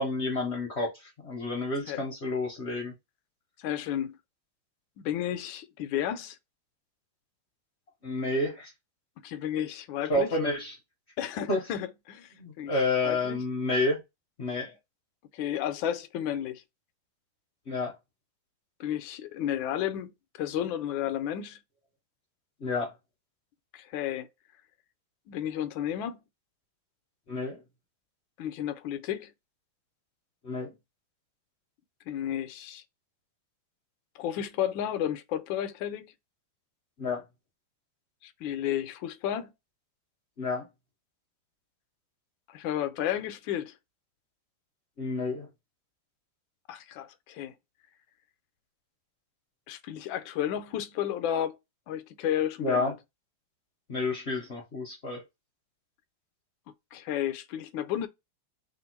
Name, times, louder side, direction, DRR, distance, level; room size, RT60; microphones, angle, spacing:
voice 1, 0.0-2.9 8.0-8.7 10.1-10.7 11.5-11.6 12.4-14.0 14.4-14.7 17.7-17.9 22.6-22.9 27.3-27.6 30.4-30.7 37.0-37.2 40.4-40.7 45.0-45.5 52.6-52.9 53.9-55.2, left 2 dB, 50° left, 0.8 m, -29 dB
voice 2, 3.6-4.2 5.0-6.4 9.2-10.3 11.2-12.3 12.6-12.8 13.0-13.4 15.3-16.6 18.8-20.1 20.4-21.6 23.7-24.3 25.3-26.2 28.4-29.3 32.1-32.8 34.1-36.1 38.2-39.5 42.5-43.7 46.7-47.5 49.7-51.6 51.9-52.9 56.9-58.1, left 10 dB, 75° left, 1.2 m, -32 dB
3.5 x 2.5 x 4.4 m
omnidirectional pair, 2.4 m